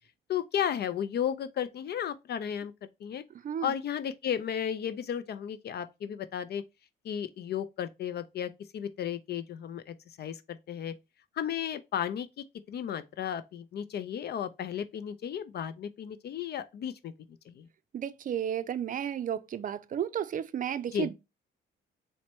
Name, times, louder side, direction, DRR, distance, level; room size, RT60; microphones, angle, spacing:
voice 1, 0.3-2.7 3.0-3.2 3.6-6.6 7.0-10.9 11.4-17.1 17.5-17.7 20.9-21.1, left 9 dB, 55° left, 0.4 m, -34 dB
voice 2, 17.9-21.1, right 9 dB, 45° right, 0.4 m, -33 dB
4.2 x 2.1 x 4.3 m
cardioid pair, 90°, 20 cm